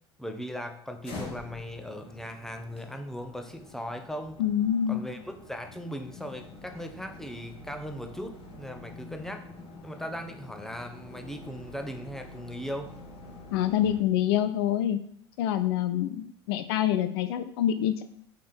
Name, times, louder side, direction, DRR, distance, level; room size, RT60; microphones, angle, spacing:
voice 1, 0.2-4.4 4.9-9.5 9.8-12.9, equal, 5° left, 5 dB, 0.9 m, -38 dB
sound 1, 1.0-14.0, left 2 dB, 40° left, 2.5 m, -46 dB
voice 2, 4.4-5.0 13.5-15.0 15.4-18.0, left 11 dB, 60° left, 11 dB, 0.5 m, -26 dB
7.3 x 3.7 x 4.4 m, 0.64 s
figure-of-eight pair, 70°, 15 cm